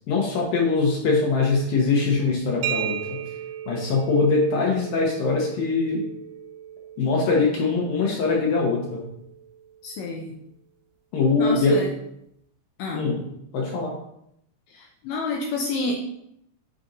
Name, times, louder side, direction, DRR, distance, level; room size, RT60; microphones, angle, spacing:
voice 1, 0.1-3.0 3.7-6.0 7.0-9.0 11.1-11.8 12.9-13.2 13.5-13.9, left 3 dB, 70° left, -2 dB, 2.4 m, -22 dB
sound 1, 2.6-10.2, right 11 dB, 90° right, 2.8 m, -36 dB
voice 2, 9.8-10.3 11.4-11.9 12.8-13.1 14.7-15.9, left 3 dB, 85° left, 0 dB, 1.9 m, -29 dB
6.5 x 4.4 x 3.9 m, 0.77 s
omnidirectional pair, 4.8 m